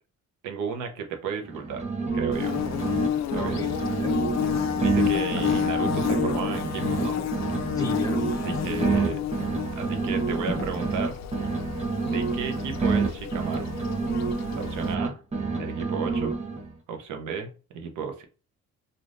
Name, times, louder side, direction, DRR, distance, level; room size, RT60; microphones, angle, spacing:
voice 1, 0.4-1.9 2.1-2.5 3.3-3.6 4.8-7.2 8.4-9.2 9.8-11.2 12.0-13.7 14.5-15.2 15.5-16.3 16.9-18.2, right 6 dB, 85° right, 0.8 m, -33 dB
sound 1, 1.4-3.1 3.3-7.1 7.3-11.1 11.3-15.1 15.3-16.7, right 4 dB, 20° right, 0.9 m, -28 dB
Bird / Buzz, 2.3-14.9, left 10 dB, 65° left, 0.5 m, -30 dB
sound 2, 3.3-3.4 3.9-4.4 4.7-7.9 8.2-11.8 12.7-13.2, left 2 dB, 45° left, 1.1 m, -39 dB
voice 2, 3.4-4.2 7.7-9.1, left 1 dB, 10° left, 0.8 m, -35 dB
3.4 x 2.6 x 2.5 m
cardioid pair, 90°, 30 cm